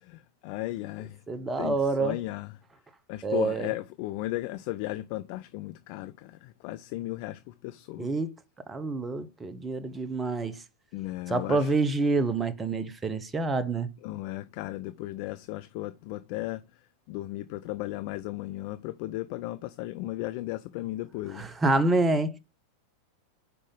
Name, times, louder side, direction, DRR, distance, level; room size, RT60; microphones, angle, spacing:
voice 1, 0.1-1.2 1.6-2.5 3.1-8.1 10.9-11.7 14.0-16.6 17.1-21.5, left 17 dB, 45° left, 0.4 m, -35 dB
voice 2, 1.3-2.2 3.2-3.7 8.0-8.3 8.7-10.6 11.3-13.9 21.3-22.4, right 3 dB, 15° right, 0.7 m, -27 dB
5.6 x 4.9 x 3.8 m
figure-of-eight pair, 90°, 0 cm